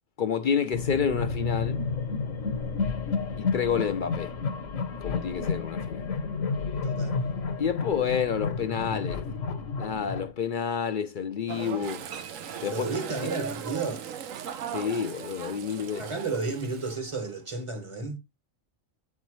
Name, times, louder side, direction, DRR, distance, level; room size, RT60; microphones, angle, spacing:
voice 1, 0.2-1.8 3.4-4.4 5.0-6.1 7.6-9.3 9.8-12.0 12.6-12.9 14.7-16.1, left 7 dB, 60° left, 0.5 m, -29 dB
sound 1, 0.7-10.3, left 4 dB, 75° left, 1.3 m, -31 dB
voice 2, 6.8-7.2 12.7-14.1 16.0-18.2, right 3 dB, 25° right, 0.9 m, -32 dB
sound 2, 11.5-17.3, right 8 dB, 90° right, 1.2 m, -39 dB
Frying (food), 11.8-17.0, right 8 dB, 70° right, 1.0 m, -45 dB
8.0 x 4.4 x 3.0 m
omnidirectional pair, 1.3 m